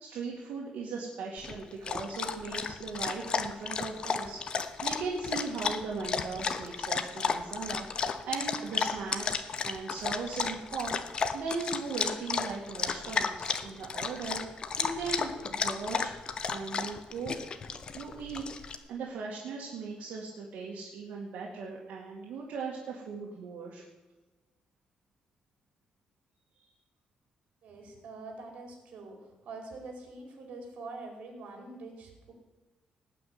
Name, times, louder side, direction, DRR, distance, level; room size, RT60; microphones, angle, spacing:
voice 1, 0.0-16.2 16.5-17.3 18.0-23.8, right 4 dB, 80° right, -3 dB, 2.6 m, -38 dB
Dog, 1.4-18.7, left 5 dB, 35° left, 1.0 m, -33 dB
voice 2, 27.6-32.3, right 3 dB, 65° right, 2 dB, 4.6 m, -45 dB
18.5 x 6.2 x 9.8 m, 1.1 s
cardioid pair, 160°, 2 cm